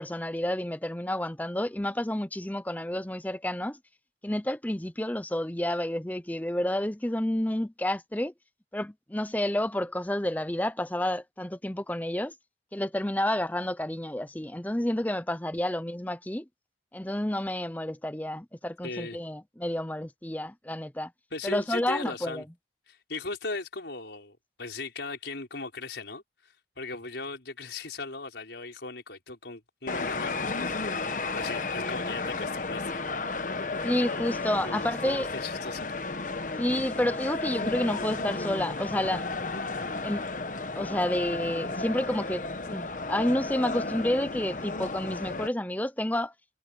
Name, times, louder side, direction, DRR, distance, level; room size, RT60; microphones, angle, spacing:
voice 1, 0.0-3.8 4.2-8.3 8.7-12.3 12.7-16.5 16.9-21.1 21.4-22.4 33.8-35.3 36.6-39.2 40.0-40.3 40.7-46.3, left 1 dB, 10° left, 0.7 m, -30 dB
voice 2, 18.8-19.2 21.3-22.4 22.9-26.2 26.8-33.0 34.6-35.9, left 3 dB, 75° left, 4.9 m, -38 dB
sound 1, 29.9-45.5, left 3 dB, 45° left, 1.1 m, -33 dB
head